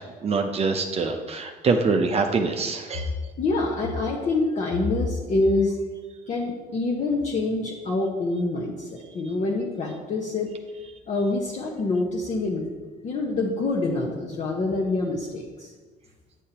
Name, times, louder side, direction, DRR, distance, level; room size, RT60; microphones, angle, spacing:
voice 1, 0.0-3.1, right 4 dB, 35° right, 4 dB, 0.6 m, -24 dB
voice 2, 3.4-5.8 6.3-10.5 11.1-12.7 13.0-15.7, left 2 dB, 45° left, -2 dB, 0.9 m, -26 dB
9.0 x 6.5 x 2.9 m, 1.4 s
cardioid pair, 110°, 17 cm